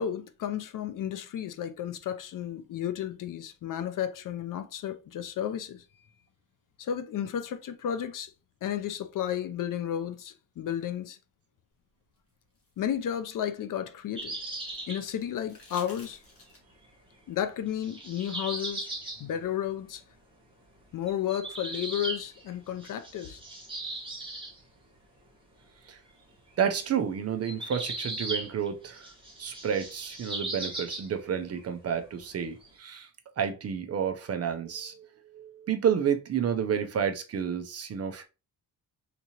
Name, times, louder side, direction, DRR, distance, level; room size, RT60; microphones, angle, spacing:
voice 1, 0.0-5.8 6.8-8.3 8.6-11.2 12.8-14.3 14.9-16.2 17.3-18.9 19.2-20.0 20.9-23.4, left 10 dB, 55° left, 0.5 m, -33 dB
sound 1, 12.2-14.4 15.3-16.9 18.5-18.6, left 2 dB, 35° left, 1.4 m, -53 dB
sound 2, 14.2-15.0 16.5-16.6 17.7-19.2 21.1-22.5 22.8-24.6 26.9-27.0 27.4-28.7 28.9-31.3 31.5-31.6 32.6-32.7, right 2 dB, 15° right, 1.1 m, -37 dB
voice 2, 26.6-29.1 29.4-33.1 33.4-35.1 35.3-38.2, right 8 dB, 40° right, 0.4 m, -30 dB
3.6 x 2.9 x 2.8 m
cardioid pair, 145°, 38 cm